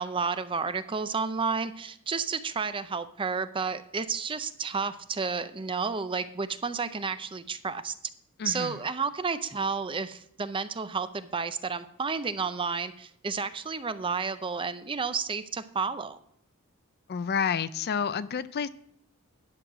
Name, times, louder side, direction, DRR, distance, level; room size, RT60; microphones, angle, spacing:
voice 1, 0.0-7.9 8.4-16.2, right 5 dB, 25° right, 12 dB, 0.5 m, -31 dB
voice 2, 8.4-8.8 17.1-18.7, left 6 dB, 45° left, 15 dB, 0.4 m, -29 dB
11.0 x 6.4 x 6.1 m, 0.70 s
head